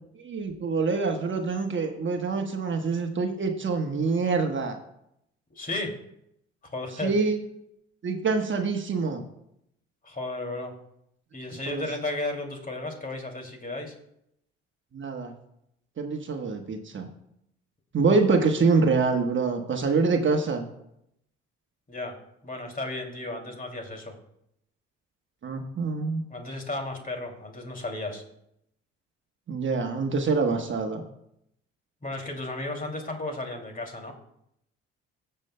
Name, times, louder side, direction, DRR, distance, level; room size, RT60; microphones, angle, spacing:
voice 1, 0.1-4.8 7.0-7.4 8.0-9.2 11.7-11.9 14.9-15.3 16.0-17.1 17.9-20.7 25.4-26.2 29.5-31.0, right 4 dB, 40° right, 4 dB, 1.2 m, -25 dB
voice 2, 5.5-5.9 6.6-7.1 10.0-10.7 11.3-13.9 21.9-22.2 22.4-24.1 26.3-28.2 32.0-34.1, left 2 dB, 30° left, 3 dB, 2.5 m, -34 dB
17.0 x 6.7 x 2.2 m, 0.77 s
hypercardioid pair, 60°, 30 cm